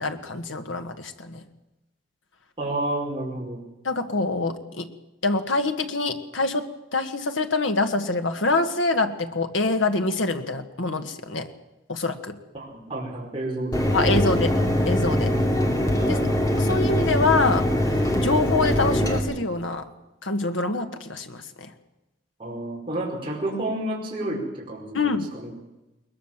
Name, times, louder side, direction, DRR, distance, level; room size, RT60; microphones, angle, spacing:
voice 1, 0.0-1.4 3.8-4.9 5.2-11.5 11.9-12.4 13.9-14.6 14.9-15.3 16.0-16.2 16.6-19.9 20.2-21.7 24.9-25.3, left 3 dB, 80° left, 7 dB, 1.7 m, -25 dB
voice 2, 2.6-3.6 12.5-14.1 14.4-14.5 15.2-15.4 16.0-16.2 22.4-25.5, right 1 dB, 25° right, -3 dB, 5.0 m, -30 dB
Mechanisms, 13.7-19.2, left 1 dB, 15° left, 2.5 m, -22 dB
21.5 x 20.5 x 7.4 m, 0.99 s
head